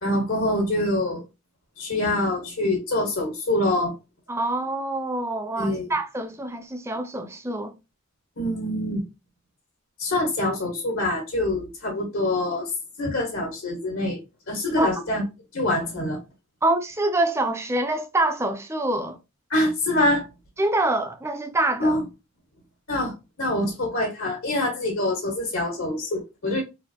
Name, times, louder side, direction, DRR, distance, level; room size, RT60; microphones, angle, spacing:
voice 1, 0.0-1.2 1.8-3.9 5.6-5.9 8.4-9.0 10.0-12.7 13.0-14.2 14.5-15.2 15.5-16.2 19.5-20.2 21.8-22.0 22.9-26.6, left 1 dB, 60° left, 1.6 m, -25 dB
voice 2, 4.3-7.7 14.8-14.9 16.6-19.2 20.6-22.0, right 2 dB, 10° right, 0.4 m, -25 dB
4.2 x 2.7 x 2.7 m
head